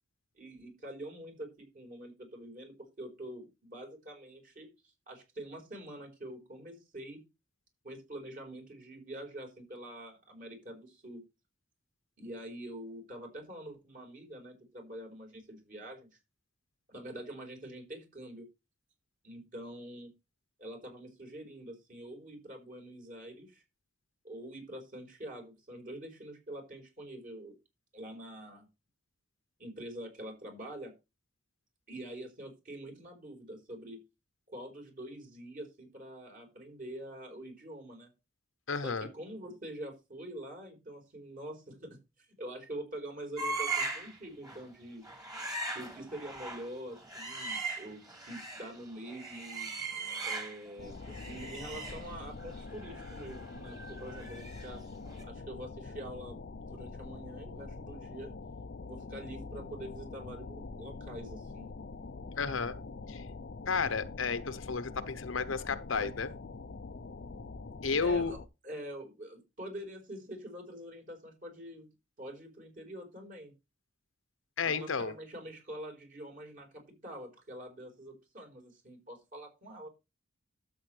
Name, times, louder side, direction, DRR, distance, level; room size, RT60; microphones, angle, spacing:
voice 1, 0.3-4.7 5.1-7.2 7.8-11.2 12.2-16.2 16.9-18.5 19.2-20.1 20.6-23.6 24.2-27.5 27.9-28.7 29.6-30.9 31.9-34.0 34.5-38.1 38.8-45.0 45.7-49.7 50.2-54.8 55.2-56.4 56.7-58.3 58.8-61.7 66.0-66.1 68.0-71.9 72.2-73.5 74.6-79.9, right 1 dB, 45° right, 4.4 m, -45 dB
voice 2, 38.7-39.1 62.4-62.7 63.1-63.3 63.7-66.3 67.8-68.3 74.6-75.1, left 5 dB, 80° left, 0.9 m, -32 dB
sound 1, 43.4-44.2 44.4-44.7 45.0-48.7 49.1-50.7 51.0-54.8 55.1-55.2, right 3 dB, 20° right, 2.4 m, -39 dB
sound 2, 50.8-68.5, left 3 dB, 55° left, 0.6 m, -45 dB
12.5 x 7.7 x 3.3 m
head